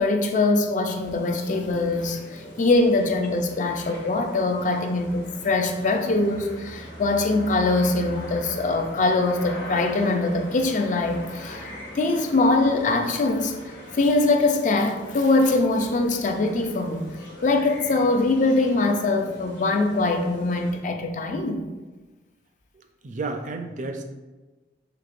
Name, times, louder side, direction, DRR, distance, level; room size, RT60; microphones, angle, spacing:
voice 1, 0.0-17.2 17.4-21.7, left 2 dB, 45° left, 0.4 m, -23 dB
sound 1, 1.0-20.8, equal, 75° left, 1.3 m, -41 dB
voice 2, 22.7-24.0, right 3 dB, 45° right, 0.4 m, -32 dB
5.9 x 2.8 x 2.5 m
head